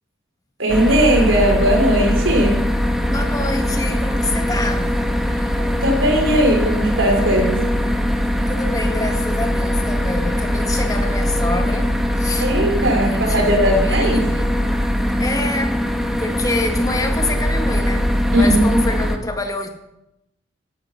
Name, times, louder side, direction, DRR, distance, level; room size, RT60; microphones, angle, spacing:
voice 1, 0.6-2.6 5.6-7.6 12.4-14.2 18.3-18.6, right 1 dB, 70° right, 4.2 m, -18 dB
sound 1, 0.7-19.2, equal, ahead, 1.4 m, -21 dB
voice 2, 3.1-5.0 8.5-12.5 13.0-14.5 15.2-15.8 16.2-19.7, left 2 dB, 20° left, 1.9 m, -27 dB
17.5 x 11.0 x 5.7 m
head